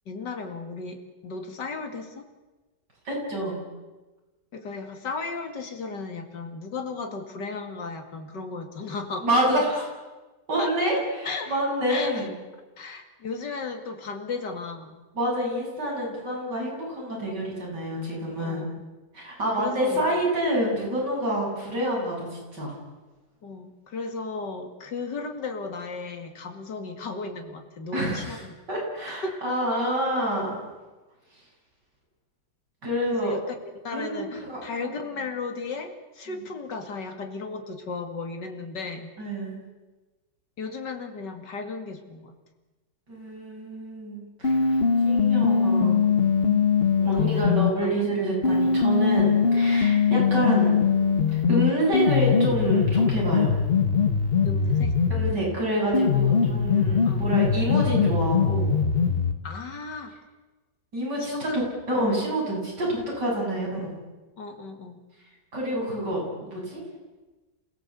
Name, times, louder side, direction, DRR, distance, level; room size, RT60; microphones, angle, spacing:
voice 1, 0.1-2.3 4.5-9.3 10.6-11.6 11.9-12.3 12.8-15.0 18.4-18.7 19.5-20.0 23.4-28.6 29.1-29.3 33.2-33.5 33.8-39.1 40.6-42.3 47.0-47.6 47.8-48.0 54.4-55.0 57.0-57.3 59.4-60.2 61.2-61.6 63.5-63.6 64.4-65.0, left 4 dB, 80° left, 5 dB, 2.9 m, -35 dB
voice 2, 3.0-3.6 9.2-9.9 10.5-11.0 11.5-12.3 15.1-18.7 19.1-22.7 27.9-28.4 28.7-30.6 32.8-33.3 33.9-34.9 39.2-39.5 43.1-44.8 45.0-46.0 47.0-50.8 51.3-53.5 55.1-58.8 60.9-63.9 65.5-66.8, right 1 dB, 75° right, -2 dB, 8.4 m, -27 dB
sound 1, 44.4-47.7 48.4-55.4 55.9-59.4, left 6 dB, 35° left, 1.4 m, -22 dB
28.0 x 17.0 x 8.2 m, 1.2 s
omnidirectional pair, 1.9 m